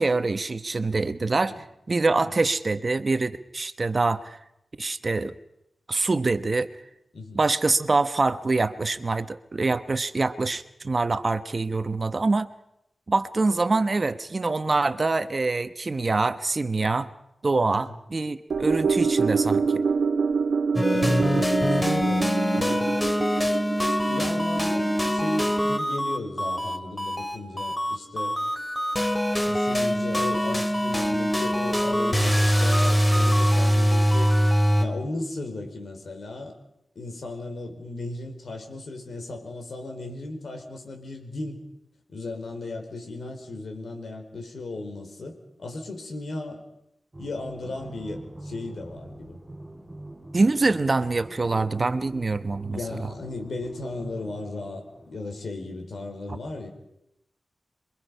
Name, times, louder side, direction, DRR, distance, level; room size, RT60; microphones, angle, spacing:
voice 1, 0.0-4.4 4.8-5.3 5.9-6.7 7.3-12.5 13.1-17.1 17.4-19.7 50.3-52.8, right 3 dB, 35° right, 11 dB, 1.0 m, -25 dB
sound 1, 18.5-26.9 27.3-27.4, right 5 dB, 75° right, 1.0 m, -27 dB
sound 2, 20.8-34.9, equal, 15° left, 2.2 m, -23 dB
voice 2, 20.9-22.3 22.5-23.0 24.1-28.4 29.4-34.3 34.8-36.6 36.9-41.6 42.1-46.6 47.2-49.4 52.7-56.7, left 2 dB, 65° left, 4 dB, 4.8 m, -35 dB
sound 3, 47.1-55.3, right 1 dB, 15° right, 5.7 m, -43 dB
27.5 x 23.0 x 5.6 m, 0.84 s
wide cardioid pair, 110°, 0 cm